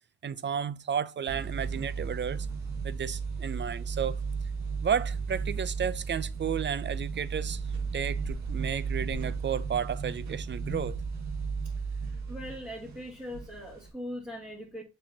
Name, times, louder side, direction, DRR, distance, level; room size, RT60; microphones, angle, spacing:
voice 1, 0.2-2.5 2.8-4.2 4.8-7.6 7.9-11.0, right 8 dB, 35° right, 0.6 m, -32 dB
sound 1, 1.3-13.9, right 5 dB, 65° right, 2.0 m, -34 dB
voice 2, 11.6-14.8, equal, 5° right, 2.3 m, -41 dB
7.2 x 5.5 x 2.9 m
cardioid pair, 90°, 30 cm